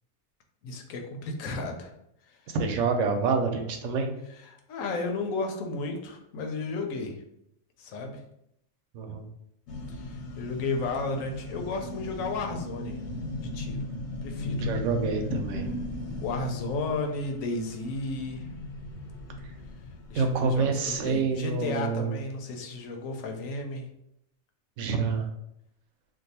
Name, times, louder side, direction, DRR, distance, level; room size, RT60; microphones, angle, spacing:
voice 1, 0.6-1.9 2.3-2.4 4.4-7.2 7.8-8.2 9.9-13.0 13.5-13.9 14.2-14.7 16.2-18.5 20.1-23.9, left 3 dB, 90° left, 4 dB, 1.0 m, -33 dB
voice 2, 2.5-4.1 8.9-9.3 14.6-15.7 20.1-22.1 24.8-25.3, right 4 dB, 70° right, 4 dB, 0.9 m, -27 dB
sound 1, 9.7-21.6, left 2 dB, 65° left, 0.8 m, -37 dB
2.6 x 2.3 x 4.1 m, 0.76 s
omnidirectional pair, 1.4 m